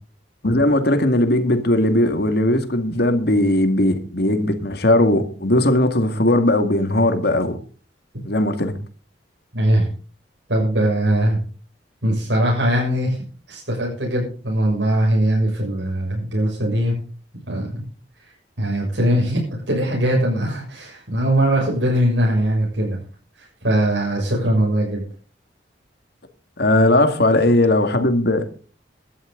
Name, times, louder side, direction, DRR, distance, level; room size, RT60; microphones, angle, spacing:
voice 1, 0.4-7.6 8.2-8.7 26.6-28.5, left 1 dB, 65° left, 2.1 m, -18 dB
voice 2, 9.5-9.9 10.5-11.4 12.0-13.2 13.5-16.9 17.5-17.8 18.6-23.0 23.4-25.0, right 1 dB, 85° right, 6.6 m, -20 dB
17.0 x 13.0 x 3.9 m
head